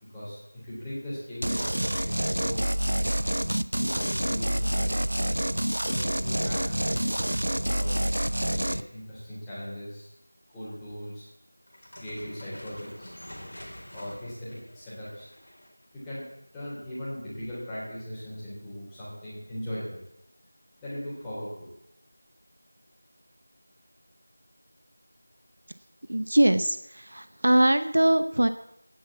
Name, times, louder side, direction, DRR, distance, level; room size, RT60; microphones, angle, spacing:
voice 1, 0.1-2.0 2.4-2.6 3.7-5.0 5.8-8.0 8.7-10.1 10.5-11.3 12.0-13.1 13.9-15.3 15.9-16.3 16.5-20.0 20.8-21.7, equal, 5° left, -11 dB, 3.4 m, -38 dB
sound 1, 1.4-8.8, right 1 dB, 85° right, 0.8 m, -27 dB
sound 2, 11.7-15.8, equal, 70° left, 4.3 m, -46 dB
voice 2, 26.1-28.5, right 1 dB, 55° right, 11 dB, 0.8 m, -22 dB
17.5 x 6.2 x 8.4 m, 0.83 s
figure-of-eight pair, 175°, 0 cm